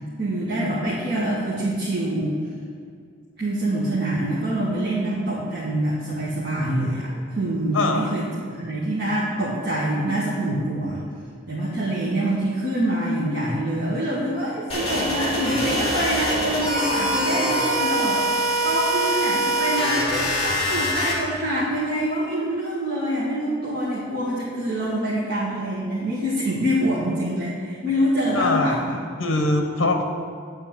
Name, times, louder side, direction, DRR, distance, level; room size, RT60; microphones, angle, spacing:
voice 1, 0.2-2.4 3.4-11.0 11.5-29.0, right 1 dB, 50° right, -9 dB, 1.6 m, -25 dB
voice 2, 7.7-8.0 28.3-28.8 29.2-30.0, left 2 dB, 65° left, 4 dB, 0.9 m, -22 dB
sound 1, 14.7-21.1, equal, 30° left, 2.2 m, -24 dB
9.4 x 4.4 x 7.3 m, 2.3 s
head